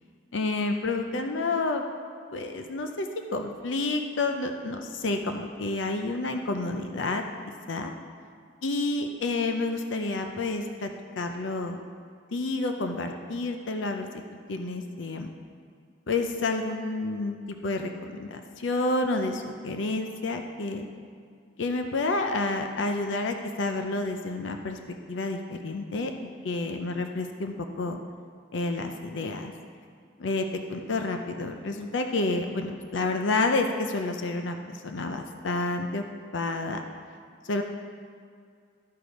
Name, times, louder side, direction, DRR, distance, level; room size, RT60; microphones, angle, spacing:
voice 1, 0.3-1.8 2.3-7.2 7.7-7.9 8.6-10.9 11.2-11.8 12.3-14.1 14.5-15.3 16.1-20.9 21.6-24.8 25.1-28.0 28.5-29.5 30.2-36.0 36.3-36.8 37.4-37.6, left 2 dB, 70° left, 5 dB, 0.6 m, -29 dB
12.5 x 4.7 x 5.2 m, 2.2 s
head